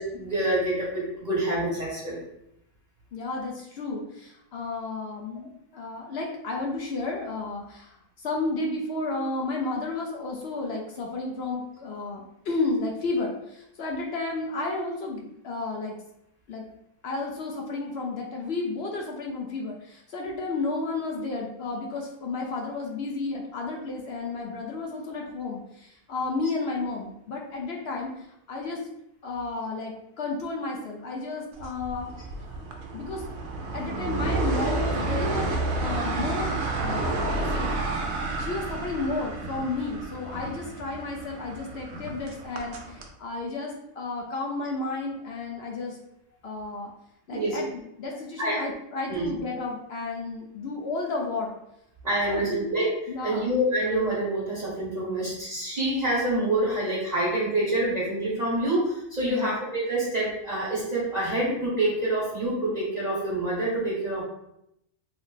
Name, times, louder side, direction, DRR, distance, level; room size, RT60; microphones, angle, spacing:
voice 1, 0.0-2.2 47.3-47.6 48.4-48.6 49.1-49.3 52.0-52.9 53.2-64.2, right 1 dB, 35° right, -10 dB, 1.1 m, -27 dB
voice 2, 3.1-16.0 16.5-16.7 17.0-28.8 29.2-32.1 32.5-32.6 32.9-33.3 33.7-37.7 38.4-46.0 46.4-46.9 47.3-51.5 52.3-52.7 53.1-53.5 59.2-59.6, left 3 dB, 65° left, 0 dB, 0.7 m, -32 dB
sound 1, 31.6-43.1, right 2 dB, 65° right, 0.8 m, -30 dB
3.2 x 2.0 x 3.9 m, 0.81 s
omnidirectional pair, 1.4 m